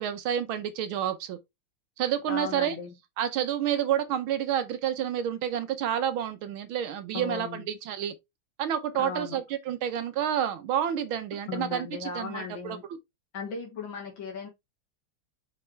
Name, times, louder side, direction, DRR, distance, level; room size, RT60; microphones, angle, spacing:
voice 1, 0.0-1.4 2.0-2.8 3.2-8.2 8.6-12.8, right 10 dB, 80° right, 1.7 m, -29 dB
voice 2, 2.3-3.0 7.1-7.7 9.0-9.4 11.5-12.8 13.3-14.5, left 5 dB, 70° left, 2.5 m, -36 dB
6.0 x 5.4 x 3.3 m
omnidirectional pair, 2.2 m